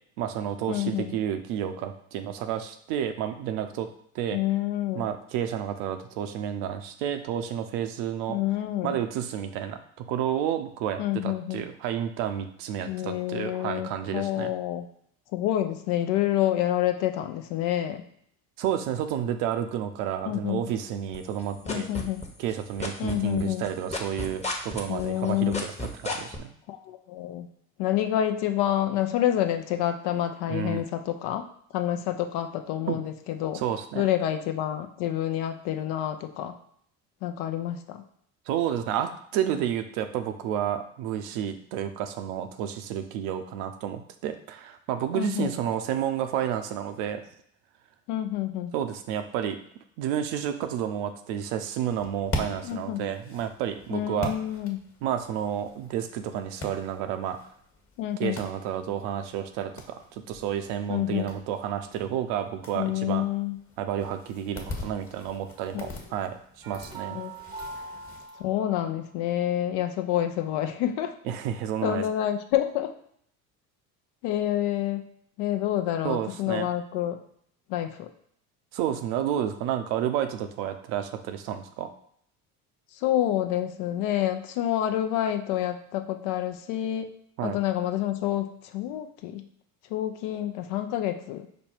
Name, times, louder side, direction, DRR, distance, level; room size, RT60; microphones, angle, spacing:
voice 1, 0.2-3.9 4.1-4.4 4.9-8.4 8.8-14.5 18.6-21.9 22.4-26.5 30.5-30.8 32.9-33.0 33.5-34.1 38.5-47.2 48.7-49.6 50.0-54.3 55.0-57.4 58.2-63.2 63.8-66.4 66.7-67.2 71.2-72.0 76.0-76.7 78.7-81.9 87.4-87.6, right 10 dB, 70° right, 8 dB, 0.7 m, -30 dB
voice 2, 0.7-1.2 4.3-5.1 8.3-9.0 11.0-11.7 12.9-14.9 15.3-18.0 20.3-20.6 21.7-22.2 23.0-23.7 24.9-25.6 26.7-27.5 27.8-31.5 31.7-33.6 33.9-36.5 37.2-38.0 45.1-45.6 48.1-48.7 52.6-53.0 53.9-54.8 58.0-58.4 60.9-61.3 62.7-63.6 65.7-65.9 67.1-67.3 68.4-71.1 71.8-72.9 74.2-75.0 75.4-77.2 77.7-78.1 83.0-87.1 87.4-89.4 89.9-91.5, left 12 dB, 65° left, 7 dB, 0.7 m, -28 dB
sound 1, 21.1-22.5 22.8-26.4, left 2 dB, 15° left, 1.0 m, -32 dB
sound 2, 51.9-68.3, left 1 dB, 30° left, 1.4 m, -42 dB
sound 3, 66.6-69.1, right 3 dB, 10° right, 0.7 m, -42 dB
5.2 x 2.2 x 4.4 m, 0.66 s
hypercardioid pair, 70°, 42 cm